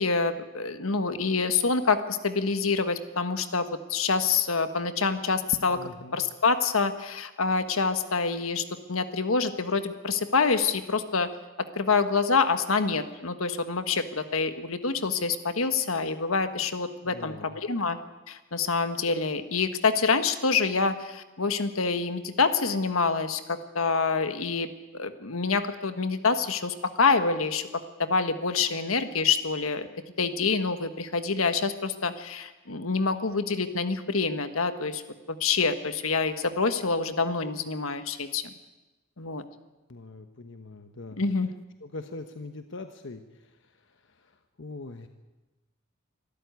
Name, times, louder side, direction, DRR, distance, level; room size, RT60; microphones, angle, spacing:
voice 1, 0.0-5.8 6.1-11.3 11.7-18.0 18.3-24.7 24.9-27.6 28.0-29.9 30.2-35.0 35.3-38.5 39.2-39.4 41.2-41.5, left 4 dB, 75° left, 9 dB, 1.5 m, -26 dB
voice 2, 5.5-6.2 17.0-17.6 39.9-41.2 41.8-45.1, left 2 dB, 60° left, 7 dB, 1.1 m, -42 dB
25.0 x 13.5 x 9.5 m, 1.1 s
head